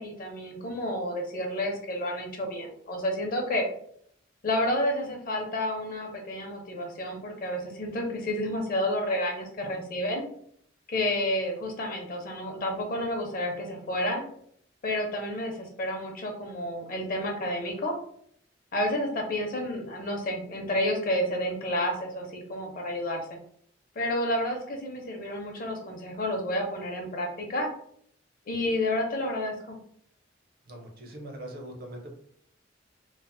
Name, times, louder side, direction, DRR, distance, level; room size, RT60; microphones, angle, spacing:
voice 1, 0.0-3.6 4.4-10.2 10.9-14.2 14.8-17.9 18.7-23.3 24.0-27.7 28.5-29.8, left 1 dB, 50° left, 2 dB, 0.6 m, -30 dB
voice 2, 30.7-32.1, right 1 dB, 50° right, 2 dB, 0.6 m, -41 dB
3.1 x 2.0 x 2.5 m, 0.65 s
head